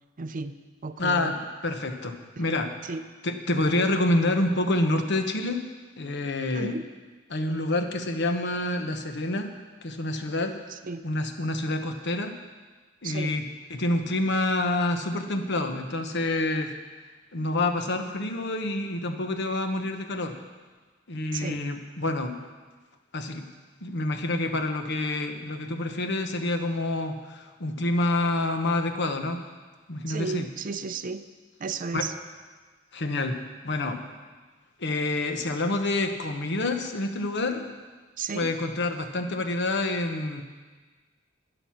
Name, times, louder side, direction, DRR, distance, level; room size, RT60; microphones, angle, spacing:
voice 1, 0.2-1.4 2.8-3.1 6.5-6.9 10.7-11.1 13.0-13.4 21.3-21.6 30.1-31.3 31.6-32.1 38.2-38.5, right 4 dB, 45° right, 11 dB, 0.5 m, -34 dB
voice 2, 1.0-1.4 1.6-2.8 3.2-5.6 6.0-6.8 7.3-9.5 9.8-10.6 11.0-12.4 13.0-13.4 13.7-16.7 17.3-20.4 21.1-22.4 23.1-23.5 23.8-29.4 29.9-30.5 31.9-32.1 32.9-33.4 33.6-34.0 34.8-37.7 38.3-40.4, left 2 dB, 60° left, 6 dB, 1.1 m, -27 dB
12.0 x 10.0 x 5.8 m, 1.4 s
head